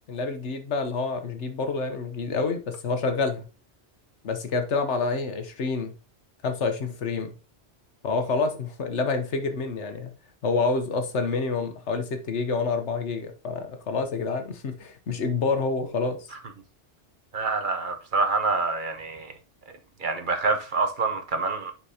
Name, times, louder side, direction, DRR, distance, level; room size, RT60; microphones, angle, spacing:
voice 1, 0.1-3.5 4.2-5.9 6.4-7.3 8.0-10.1 10.4-16.3, left 4 dB, 85° left, 1.3 m, -28 dB
voice 2, 17.3-19.3 20.0-21.7, right 4 dB, 50° right, 1.0 m, -26 dB
9.8 x 4.5 x 2.8 m
omnidirectional pair, 1.1 m